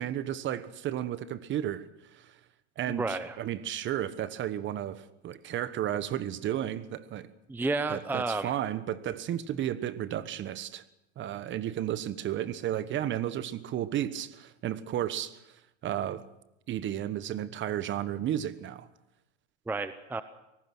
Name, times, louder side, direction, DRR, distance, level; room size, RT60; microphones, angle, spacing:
voice 1, 0.0-1.8 2.1-2.3 2.8-7.3 7.9-10.8 11.2-15.4 15.8-16.2 16.7-18.9, right 11 dB, 35° right, 15 dB, 1.2 m, -33 dB
voice 2, 2.9-3.4 7.5-8.5 19.7-20.2, right 3 dB, 5° right, 12 dB, 0.7 m, -31 dB
24.5 x 18.5 x 6.1 m, 0.89 s
supercardioid pair, 125°, 35 cm